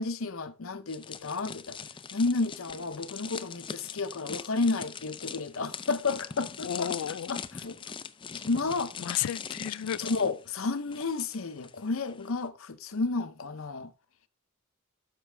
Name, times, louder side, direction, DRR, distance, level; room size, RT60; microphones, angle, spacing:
voice 1, 0.0-1.8 2.1-7.0 7.3-7.8 8.3-8.9 10.0-13.9, left 3 dB, 65° left, 0.8 m, -31 dB
sound 1, 0.9-11.7 12.0-12.3, left 6 dB, 25° left, 0.4 m, -42 dB
voice 2, 6.6-7.3 9.0-10.0, left 10 dB, 85° left, 0.4 m, -32 dB
12.5 x 5.9 x 3.4 m
head